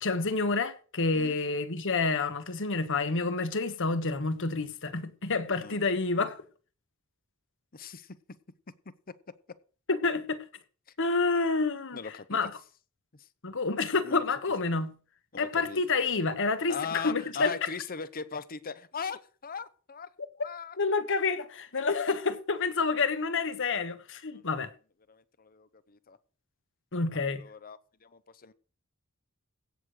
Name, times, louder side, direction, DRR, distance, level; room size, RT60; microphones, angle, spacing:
voice 1, 0.0-6.4 9.9-10.4 11.0-12.0 12.3-12.5 13.4-14.9 15.4-17.5 20.8-24.7 26.9-27.4, left 3 dB, 60° left, 1.4 m, -28 dB
voice 2, 7.7-8.2 8.9-9.1 11.9-12.5 13.1-13.3 14.0-14.2 15.3-15.8 16.7-20.1 20.4-20.8 24.3-24.6 25.1-26.2 27.1-28.5, left 5 dB, 40° left, 0.8 m, -40 dB
16.5 x 6.7 x 6.4 m
head